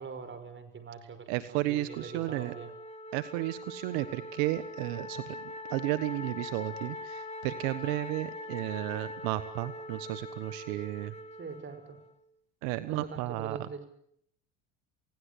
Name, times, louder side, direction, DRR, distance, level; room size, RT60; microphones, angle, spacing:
voice 1, 0.0-2.7 11.4-12.0 12.9-13.8, right 5 dB, 30° right, 10 dB, 5.7 m, -43 dB
voice 2, 1.3-2.6 3.1-11.1 12.6-13.7, right 17 dB, 75° right, 13 dB, 1.4 m, -33 dB
Wind instrument woodwind instrument, 1.8-12.2, left 1 dB, 15° left, 3.3 m, -43 dB
29.0 x 18.0 x 8.4 m, 0.70 s
supercardioid pair, 95°, 39 cm